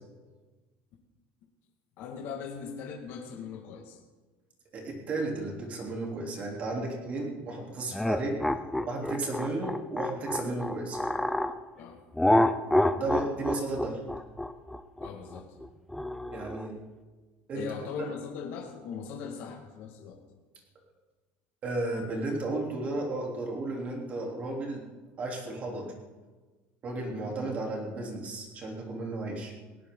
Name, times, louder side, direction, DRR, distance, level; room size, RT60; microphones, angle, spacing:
voice 1, 2.0-4.0 11.8-12.0 15.0-15.5 17.5-20.2, left 6 dB, 50° left, 1 dB, 1.9 m, -40 dB
voice 2, 4.7-8.5 8.8-11.0 12.9-14.0 16.3-16.8 17.5-17.7 17.9-18.0 21.6-24.8 25.2-25.9 26.8-29.5, right 2 dB, 30° right, -1 dB, 3.4 m, -33 dB
sound 1, 7.9-11.5 12.2-16.7, left 1 dB, 5° left, 0.5 m, -27 dB
19.0 x 17.5 x 3.9 m, 1.3 s
cardioid pair, 165°, 5 cm